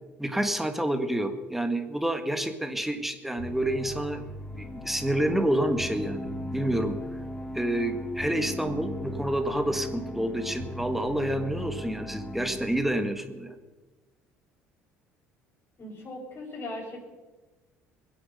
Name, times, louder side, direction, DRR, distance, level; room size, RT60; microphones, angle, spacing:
voice 1, 0.2-4.2 4.6-7.0 7.5-13.5, right 1 dB, 5° right, 7 dB, 1.7 m, -28 dB
Bass guitar, 3.4-13.0, equal, 80° left, 2.5 m, -42 dB
sound 1, 3.4-12.6, left 1 dB, 15° left, 1.2 m, -40 dB
voice 2, 15.8-17.1, left 1 dB, 40° left, -7 dB, 5.6 m, -38 dB
21.5 x 8.0 x 6.6 m, 1.2 s
supercardioid pair, 75°, 6 cm